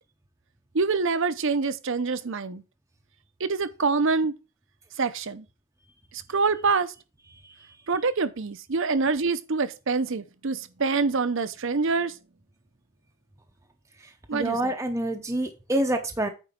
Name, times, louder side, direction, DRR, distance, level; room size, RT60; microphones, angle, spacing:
voice 1, 0.7-2.6 3.4-4.3 5.0-5.4 6.3-6.9 7.9-12.1 14.3-14.7, right 4 dB, 55° right, 0.7 m, -25 dB
voice 2, 14.3-16.3, right 1 dB, 15° right, 0.7 m, -27 dB
9.1 x 4.0 x 5.2 m
head